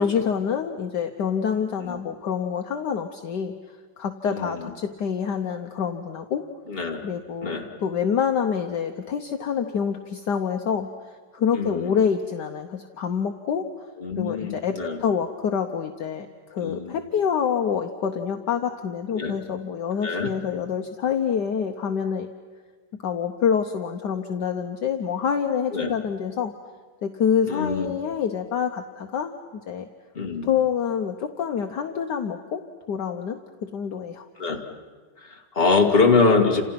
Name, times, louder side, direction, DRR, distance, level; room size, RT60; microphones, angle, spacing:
voice 1, 0.0-3.5 4.0-6.4 7.0-10.9 11.3-13.7 14.2-22.3 23.0-26.5 27.0-29.9 30.4-32.6 32.9-34.3, left 7 dB, 60° left, 5 dB, 1.5 m, -26 dB
voice 2, 4.3-4.7 6.7-7.0 7.4-7.7 11.5-12.0 14.0-15.0 16.6-17.0 19.1-19.3 20.0-20.3 25.7-25.9 27.5-27.9 30.2-30.5 34.4-34.6 35.2-36.6, left 4 dB, 30° left, 2 dB, 2.4 m, -23 dB
30.0 x 28.0 x 5.9 m, 1.5 s
omnidirectional pair, 2.2 m